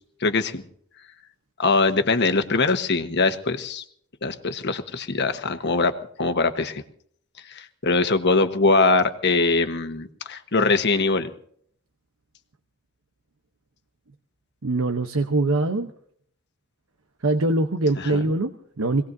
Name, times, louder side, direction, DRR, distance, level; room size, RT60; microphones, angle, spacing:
voice 1, 0.2-0.6 1.6-3.8 4.2-5.9 6.2-6.8 7.5-11.3 18.1-18.2, left 3 dB, 55° left, 8 dB, 1.3 m, -22 dB
voice 2, 14.6-15.9 17.2-19.0, right 2 dB, 75° right, 8 dB, 0.9 m, -23 dB
25.5 x 18.5 x 2.7 m, 0.62 s
head